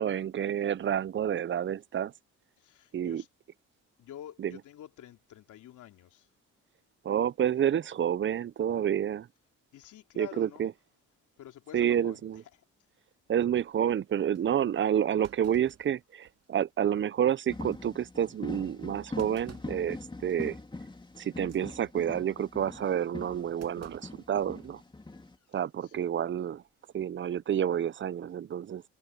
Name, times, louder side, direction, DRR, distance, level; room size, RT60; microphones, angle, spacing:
voice 1, 0.0-2.1 2.9-3.2 4.4-4.6 7.0-9.3 10.2-10.7 11.7-12.4 13.3-20.6 21.2-24.8 25.5-26.6 26.9-28.8, right 9 dB, 40° right, 0.6 m, -29 dB
voice 2, 2.6-3.3 4.0-6.3 9.7-10.7 11.4-12.2 25.1-25.2 25.5-26.1, left 12 dB, 80° left, 3.8 m, -49 dB
Thump thud, 13.7-13.8 14.3-14.4 15.2-16.6 17.0-17.1 17.5-17.8 19.2-19.8 20.3-20.6 21.3-21.6 23.6-24.8 25.1-25.2 26.4-26.7, right 8 dB, 55° right, 2.4 m, -55 dB
sound 1, 17.5-25.3, left 2 dB, 15° left, 3.4 m, -42 dB
cardioid pair, 90°, 30 cm